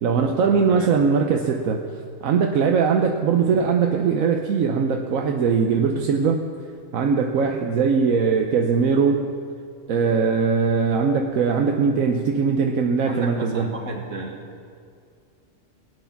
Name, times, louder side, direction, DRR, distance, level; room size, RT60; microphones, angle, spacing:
voice 1, 0.0-1.8 2.2-6.4 6.9-9.2 9.9-13.7, right 5 dB, 85° right, 3 dB, 1.2 m, -20 dB
voice 2, 13.0-14.4, right 3 dB, 70° right, 2 dB, 2.1 m, -32 dB
19.5 x 9.4 x 5.8 m, 2.3 s
omnidirectional pair, 1.4 m